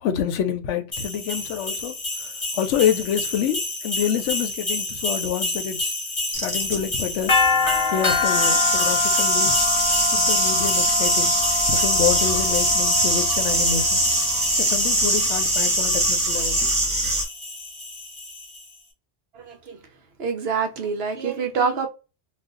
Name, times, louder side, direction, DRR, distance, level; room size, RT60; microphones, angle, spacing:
voice 1, 0.0-1.9 2.6-3.6 3.8-5.9 6.4-7.3 7.9-9.6 10.1-11.3 11.7-14.0 14.7-16.6, left 9 dB, 80° left, 0.9 m, -27 dB
sound 1, 0.9-18.6, left 3 dB, 25° left, 0.9 m, -27 dB
sound 2, 6.3-7.0 8.2-17.2, right 1 dB, 5° right, 1.3 m, -21 dB
voice 2, 19.3-19.8 20.2-21.9, right 5 dB, 65° right, 0.8 m, -26 dB
2.4 x 2.3 x 3.7 m
omnidirectional pair, 1.3 m